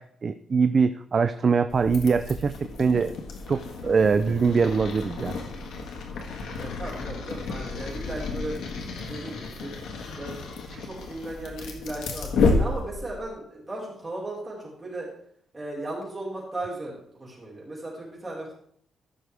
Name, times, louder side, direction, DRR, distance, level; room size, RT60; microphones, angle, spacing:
voice 1, 0.0-2.5 2.8-3.1 3.5-5.4 10.7-10.8, right 5 dB, 35° right, 10 dB, 0.4 m, -23 dB
sound 1, 1.7-13.3, left 3 dB, 90° left, 1.7 m, -31 dB
voice 2, 6.6-8.6 9.1-9.7 10.1-10.3 10.8-15.1 15.5-18.5, right 1 dB, 15° right, -6 dB, 4.6 m, -36 dB
15.0 x 6.2 x 3.5 m, 0.65 s
cardioid pair, 145°, 0 cm